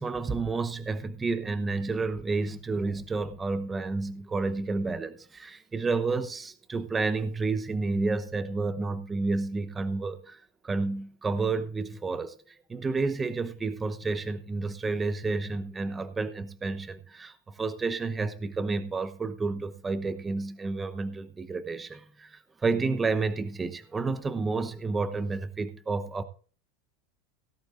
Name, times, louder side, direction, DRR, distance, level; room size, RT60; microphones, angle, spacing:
voice 1, 0.0-12.4 12.7-26.2, right 3 dB, 15° right, 0.9 m, -30 dB
17.5 x 11.5 x 2.6 m
supercardioid pair, 160°, 0 cm